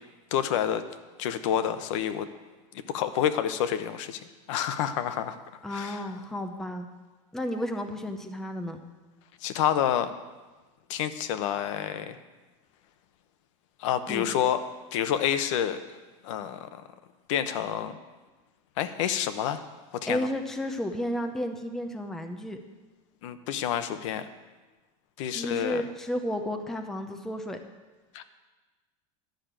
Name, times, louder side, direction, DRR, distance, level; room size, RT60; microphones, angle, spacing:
voice 1, 0.3-0.8 1.2-2.3 2.9-4.2 4.5-5.4 5.7-6.0 9.4-10.1 10.9-12.2 13.8-14.6 14.9-15.8 16.2-16.8 17.3-18.0 18.8-19.6 19.9-20.3 23.2-24.3 25.2-25.8 28.1-28.3, left 10 dB, 65° left, 10 dB, 0.9 m, -28 dB
voice 2, 5.6-6.9 7.3-8.8 14.1-14.3 20.1-22.6 25.3-27.6, equal, ahead, 5 dB, 0.7 m, -32 dB
11.5 x 6.5 x 8.9 m, 1.2 s
supercardioid pair, 160°, 17 cm